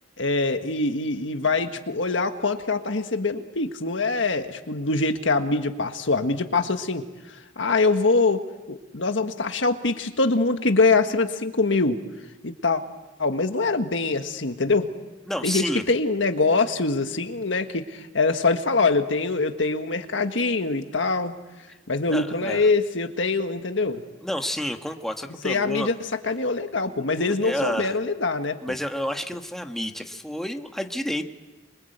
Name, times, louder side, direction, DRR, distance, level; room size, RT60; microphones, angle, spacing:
voice 1, 0.2-7.0 7.6-12.0 12.4-12.8 13.2-14.9 15.4-21.3 21.9-24.0 25.4-25.9 26.2-28.6, left 3 dB, 85° left, 7 dB, 1.6 m, -24 dB
voice 2, 15.3-15.8 22.1-22.7 24.2-25.9 26.8-28.0 28.6-31.2, equal, ahead, 4 dB, 1.5 m, -30 dB
27.0 x 23.5 x 8.1 m, 1.2 s
head